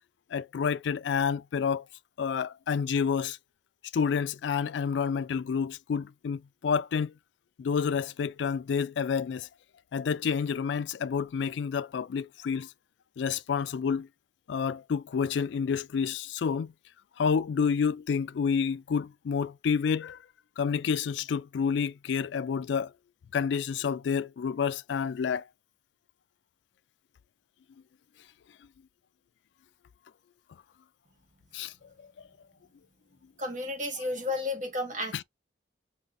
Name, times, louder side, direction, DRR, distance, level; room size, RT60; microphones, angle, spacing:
voice 1, 0.3-1.8 2.2-3.4 3.9-7.1 7.6-9.5 9.9-12.7 13.2-14.1 14.5-16.7 17.2-20.2 20.6-22.9 23.3-25.4 31.5-31.7 34.0-34.1 35.1-35.2, left 6 dB, 70° left, 0.3 m, -29 dB
voice 2, 33.4-35.2, left 2 dB, 40° right, 1.5 m, -32 dB
5.5 x 3.0 x 2.5 m
head